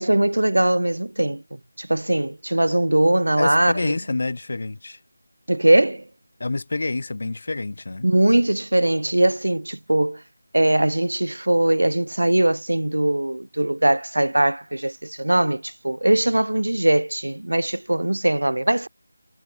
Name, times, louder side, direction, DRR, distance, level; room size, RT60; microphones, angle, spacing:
voice 1, 0.0-1.4 1.8-4.0 5.5-6.0 8.0-10.2 10.5-18.9, right 1 dB, 75° right, 1.0 m, -20 dB
voice 2, 3.4-5.0 6.4-8.1, left 2 dB, 50° left, 1.3 m, -27 dB
figure-of-eight pair, 165°, 0 cm